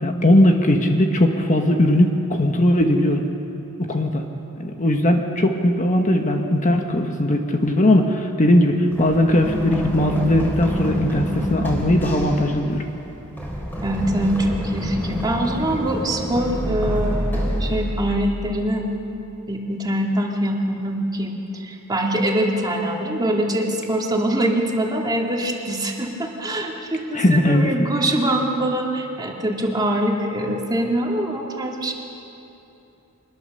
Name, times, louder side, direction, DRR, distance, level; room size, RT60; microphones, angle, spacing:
voice 1, 0.0-3.2 3.8-4.2 4.6-12.8 27.1-27.7, left 1 dB, 35° left, 3 dB, 1.4 m, -19 dB
Run, 8.9-18.7, equal, 10° left, 3.9 m, -27 dB
voice 2, 13.8-18.8 19.5-31.9, right 1 dB, 20° right, -1 dB, 2.4 m, -24 dB
24.5 x 21.0 x 6.8 m, 2.9 s
head